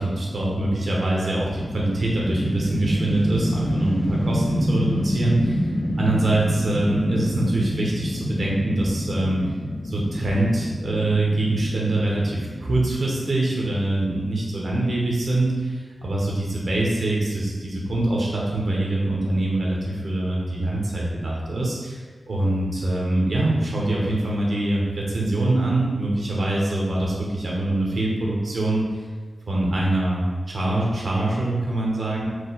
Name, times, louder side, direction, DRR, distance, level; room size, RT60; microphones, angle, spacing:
voice 1, 0.0-5.6 6.0-9.4 9.8-22.0 22.3-28.8 29.5-32.3, right 2 dB, 65° right, -4 dB, 1.0 m, -24 dB
sound 1, 1.6-13.8, equal, 15° left, 0.4 m, -27 dB
4.7 x 2.3 x 4.1 m, 1.5 s
wide cardioid pair, 115°, 0 cm